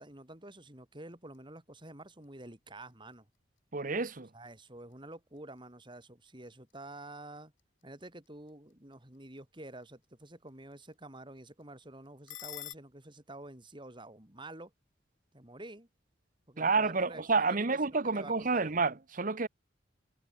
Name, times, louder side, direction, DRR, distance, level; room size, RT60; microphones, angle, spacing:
voice 1, 0.0-3.3 4.3-7.5 7.8-14.7 15.3-15.9 16.5-18.8, right 2 dB, 25° right, 4.1 m, -49 dB
sound 1, 1.2-12.7, left 14 dB, 90° left, 3.5 m, -56 dB
voice 2, 3.7-4.3 16.6-19.5, right 4 dB, 45° right, 1.1 m, -29 dB
head